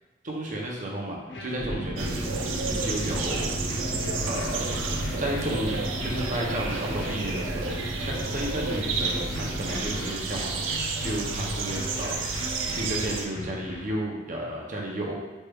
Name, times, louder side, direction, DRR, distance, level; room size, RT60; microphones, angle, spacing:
voice 1, 0.2-7.7 8.0-10.6 11.0-12.2 12.7-15.1, right 1 dB, 40° right, -2 dB, 0.6 m, -33 dB
sound 1, 1.3-13.9, left 1 dB, 65° left, 0.5 m, -40 dB
sound 2, 1.6-10.0, equal, 20° left, 1.0 m, -35 dB
sound 3, 2.0-13.2, right 4 dB, 90° right, 0.4 m, -31 dB
3.3 x 3.1 x 2.2 m, 1.2 s
head